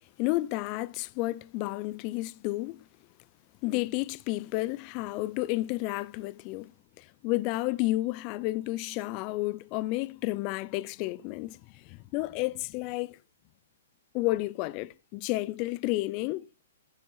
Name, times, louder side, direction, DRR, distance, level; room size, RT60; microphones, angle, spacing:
voice 1, 0.2-2.8 3.6-6.7 7.0-13.2 14.1-16.5, left 19 dB, 35° left, 0.6 m, -31 dB
15.0 x 6.9 x 5.7 m
hypercardioid pair, 125°, 0 cm